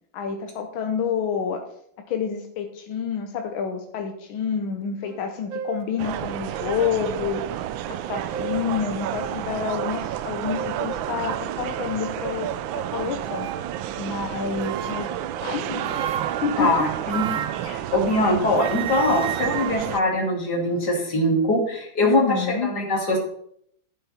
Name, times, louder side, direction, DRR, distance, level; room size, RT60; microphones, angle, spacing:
voice 1, 0.1-1.6 2.1-7.4 7.9-13.5 14.0-15.1 15.4-16.0 16.4-16.9 22.0-22.7, left 6 dB, 80° left, 4 dB, 1.7 m, -28 dB
sound 1, 5.1-5.2 5.5-5.9 6.6-6.7 8.0-8.7 9.2-9.3 9.8-10.0 10.5-10.8 11.5-12.2 13.2-13.7 14.6-15.2 15.8-18.3 18.6-20.9, right 8 dB, 60° right, 0.9 m, -34 dB
sound 2, 6.0-20.0, right 11 dB, 80° right, 1.3 m, -30 dB
voice 2, 16.6-23.2, left 1 dB, 55° left, 1 dB, 3.1 m, -23 dB
11.5 x 8.6 x 4.2 m, 0.68 s
omnidirectional pair, 2.2 m